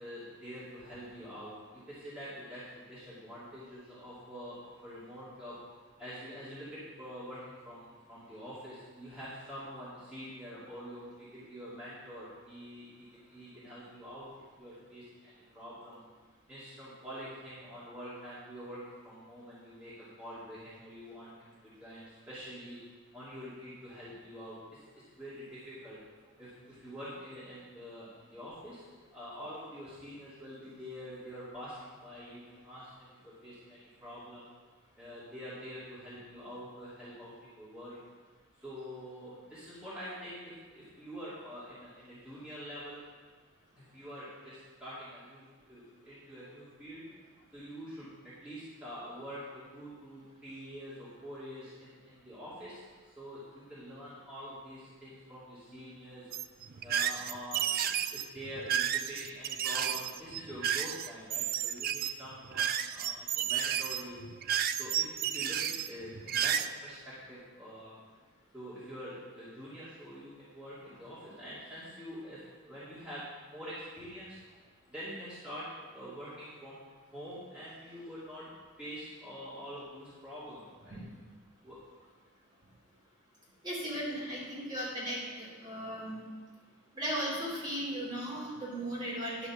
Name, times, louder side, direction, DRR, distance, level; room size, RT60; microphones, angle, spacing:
voice 1, 0.0-5.7 6.0-16.0 16.5-22.8 23.1-24.8 25.2-26.0 26.4-34.5 35.0-38.0 38.6-43.0 43.8-47.1 47.5-52.8 53.2-56.3 56.8-64.3 64.7-68.0 68.5-74.4 74.9-81.0 81.6-81.9, equal, 5° right, -13 dB, 2.6 m, -46 dB
sound 1, 56.3-66.7, right 9 dB, 45° right, 0.3 m, -32 dB
voice 2, 83.6-86.2 86.9-89.5, equal, 20° right, -7 dB, 3.2 m, -36 dB
11.0 x 6.0 x 6.1 m, 1.4 s
head